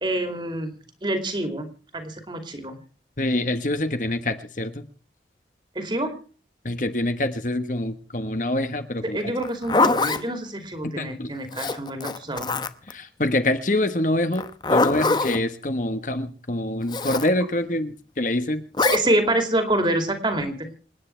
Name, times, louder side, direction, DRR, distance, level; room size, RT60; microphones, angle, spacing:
voice 1, 0.0-2.8 5.7-6.2 9.1-12.6 18.8-20.7, right 1 dB, 25° right, 6 dB, 2.6 m, -26 dB
voice 2, 3.2-4.8 6.6-9.3 11.0-11.3 12.9-18.6, left 1 dB, 45° left, 9 dB, 1.4 m, -25 dB
Zipper (clothing), 9.4-10.2 11.5-12.9 14.3-15.4 16.9-17.3 18.7-19.0, left 3 dB, 25° left, 0.8 m, -23 dB
27.5 x 9.8 x 4.5 m, 0.38 s
head